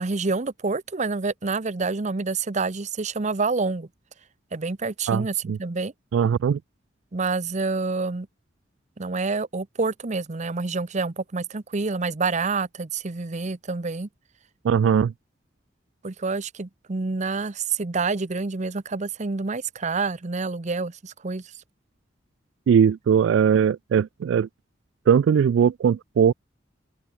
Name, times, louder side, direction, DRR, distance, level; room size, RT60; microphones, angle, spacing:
voice 1, 0.0-3.9 4.5-5.9 7.1-8.3 9.0-14.1 16.0-21.4, right 4 dB, 40° right, 0.8 m, -27 dB
voice 2, 5.1-5.6 6.1-6.6 14.6-15.1 22.7-24.5 25.1-26.3, right 7 dB, 85° right, 0.3 m, -20 dB
open air
head